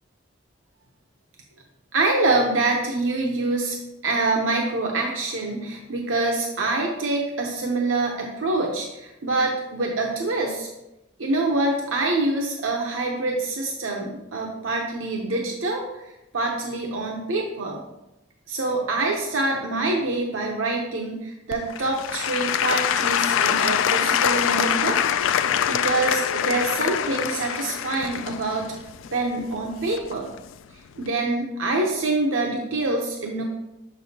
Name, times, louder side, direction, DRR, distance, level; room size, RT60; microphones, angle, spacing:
voice 1, 1.9-3.8 4.0-10.7 11.2-16.0 16.3-17.8 18.5-25.0 25.4-28.7 29.1-30.3 31.0-33.4, right 2 dB, 85° right, 0 dB, 0.8 m, -25 dB
Applause / Crowd, 21.5-30.4 31.0-31.1, left 9 dB, 85° left, 0.3 m, -24 dB
6.4 x 6.2 x 2.8 m, 0.91 s
head